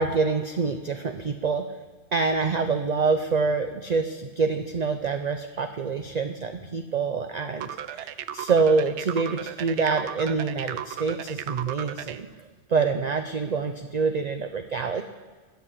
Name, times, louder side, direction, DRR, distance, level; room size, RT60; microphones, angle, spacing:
voice 1, 0.0-1.7 2.1-12.3 12.7-15.1, right 4 dB, 45° right, 7 dB, 0.7 m, -26 dB
sound 1, 7.6-12.2, right 11 dB, 75° right, 0.9 m, -35 dB
11.5 x 8.1 x 7.5 m, 1.4 s
omnidirectional pair, 1.2 m